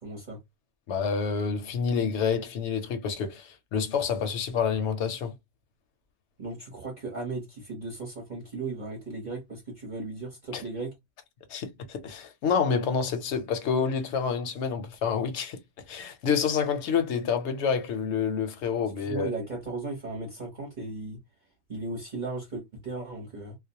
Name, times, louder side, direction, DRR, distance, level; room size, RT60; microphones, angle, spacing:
voice 1, 0.0-0.4 6.4-10.9 19.0-21.2 21.7-23.5, right 3 dB, 40° right, 0.8 m, -36 dB
voice 2, 0.9-5.3 10.5-10.6 11.5-15.6 15.9-19.3, left 6 dB, 65° left, 0.8 m, -28 dB
2.3 x 2.1 x 2.7 m
omnidirectional pair, 1.5 m